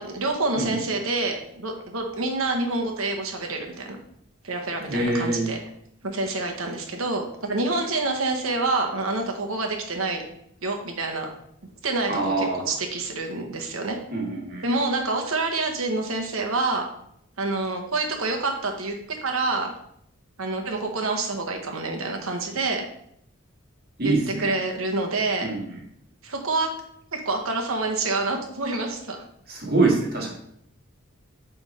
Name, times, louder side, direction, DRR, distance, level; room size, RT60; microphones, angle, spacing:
voice 1, 0.0-4.0 4.4-5.6 6.0-10.2 10.6-11.3 11.8-14.0 14.6-16.8 17.4-19.7 20.4-22.8 24.0-25.5 26.2-26.7 27.1-29.2, right 3 dB, 75° right, 3 dB, 1.2 m, -27 dB
voice 2, 4.9-5.6 12.1-12.7 14.1-14.6 24.0-24.5 25.4-25.8 29.5-30.3, right 2 dB, 45° right, -1 dB, 1.6 m, -25 dB
8.2 x 3.6 x 4.2 m, 0.72 s
head